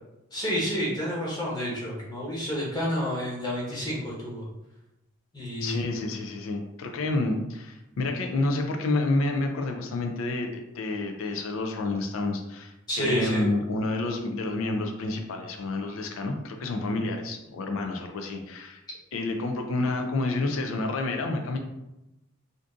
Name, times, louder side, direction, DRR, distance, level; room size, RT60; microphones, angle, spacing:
voice 1, 0.3-4.4 5.3-5.8 12.9-13.4, equal, 20° left, -5 dB, 0.9 m, -29 dB
voice 2, 5.6-18.8 19.1-21.6, left 2 dB, 75° left, 4 dB, 0.4 m, -29 dB
2.6 x 2.5 x 3.5 m, 0.94 s
head